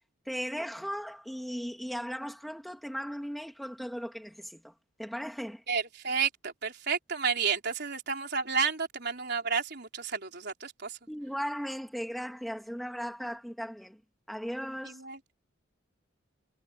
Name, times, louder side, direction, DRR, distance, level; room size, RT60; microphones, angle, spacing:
voice 1, 0.3-4.7 5.0-5.6 11.1-14.0 14.3-15.0, equal, ahead, 2.1 m, -37 dB
voice 2, 5.7-11.0 14.8-15.2, right 6 dB, 50° right, 4.3 m, -31 dB
head